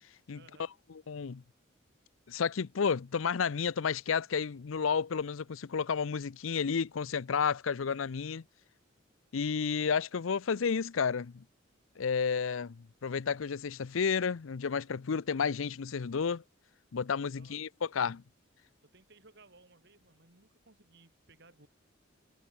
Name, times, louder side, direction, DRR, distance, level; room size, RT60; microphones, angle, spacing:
voice 1, 0.3-0.7 17.2-17.6 18.8-21.7, right 3 dB, 55° right, 6.7 m, -60 dB
voice 2, 1.1-1.4 2.3-8.4 9.3-11.4 12.0-16.4 16.9-18.2, left 6 dB, 80° left, 0.5 m, -31 dB
head